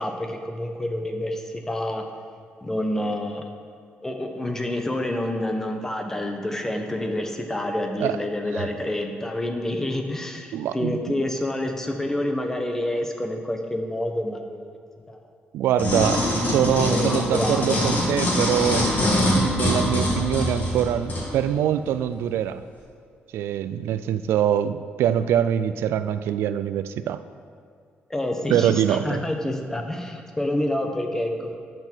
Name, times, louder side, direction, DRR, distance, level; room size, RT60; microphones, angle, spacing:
voice 1, 0.0-2.0 2.6-3.5 4.0-14.8 15.1-15.2 16.8-17.8 28.1-31.6, left 1 dB, 10° left, 4 dB, 0.9 m, -28 dB
voice 2, 10.5-11.0 15.5-22.6 23.3-27.2 28.5-29.2, right 10 dB, 90° right, 12 dB, 0.4 m, -24 dB
sound 1, 15.8-21.3 21.9-22.0, left 1 dB, 45° left, 2.7 m, -23 dB
13.0 x 6.1 x 4.5 m, 2.3 s
cardioid pair, 135°, 4 cm